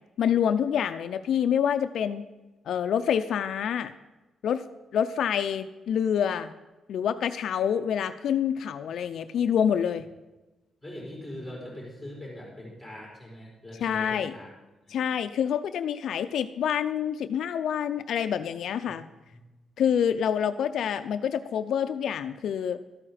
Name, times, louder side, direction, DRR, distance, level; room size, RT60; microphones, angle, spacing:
voice 1, 0.2-2.3 2.7-3.9 4.4-4.6 4.9-6.5 6.9-10.1 13.8-14.4 14.9-19.1 19.8-22.8, left 8 dB, 70° left, 10 dB, 0.4 m, -27 dB
voice 2, 10.8-14.5 14.9-15.0 19.3-19.4, left 1 dB, 10° right, -4 dB, 4.4 m, -41 dB
13.0 x 8.8 x 5.0 m, 1.1 s
wide cardioid pair, 165°, 0 cm